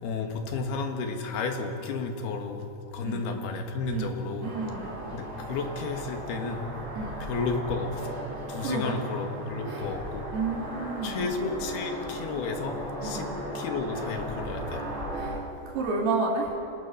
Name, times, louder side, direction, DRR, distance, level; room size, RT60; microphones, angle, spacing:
voice 1, 0.0-2.7 2.9-4.6 5.1-6.6 7.2-8.2 8.5-10.3 11.0-12.8 13.0-13.3 13.6-14.8, left 4 dB, 80° left, 4 dB, 3.7 m, -32 dB
sound 1, 4.4-15.4, equal, 25° right, 7.8 m, -37 dB
voice 2, 4.4-5.1 6.9-7.1 8.6-9.0 9.7-9.9 10.3-11.3 13.0-13.3 15.1-15.4 15.7-16.5, right 3 dB, 85° right, -2 dB, 4.4 m, -31 dB
27.5 x 19.0 x 5.8 m, 2.7 s
omnidirectional pair, 4.5 m